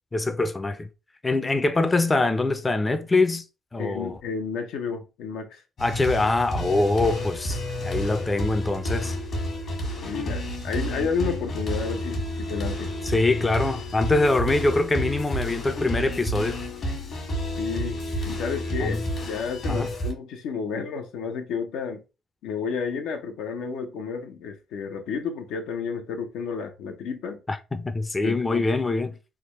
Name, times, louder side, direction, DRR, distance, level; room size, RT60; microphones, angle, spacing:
voice 1, 0.1-0.9 1.2-3.4 3.7-4.2 5.8-9.2 13.0-16.6 18.8-19.0 19.7-19.9 27.5-29.2, left 2 dB, 20° left, 0.4 m, -24 dB
voice 2, 3.8-5.6 10.0-12.9 17.6-18.0 18.3-22.0 22.4-27.4 28.2-28.6, left 5 dB, 90° left, 0.6 m, -31 dB
sound 1, 5.8-20.1, equal, 60° left, 1.3 m, -30 dB
3.4 x 2.1 x 3.0 m
cardioid pair, 90°, 0 cm